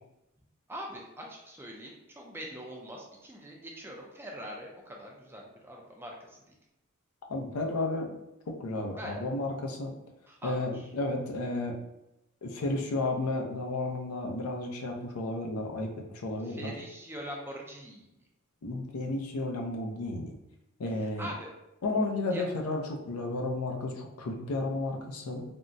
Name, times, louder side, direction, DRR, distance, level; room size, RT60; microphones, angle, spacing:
voice 1, 0.7-6.6 9.0-9.2 10.3-10.6 16.4-18.1 21.2-21.5 22.3-22.4, equal, 10° right, -1 dB, 0.4 m, -43 dB
voice 2, 7.3-8.1 8.5-10.0 10.4-11.8 12.4-16.7 18.6-20.4 20.8-21.3 21.8-25.4, left 2 dB, 80° left, 1 dB, 0.5 m, -32 dB
3.5 x 2.0 x 2.6 m, 0.89 s
head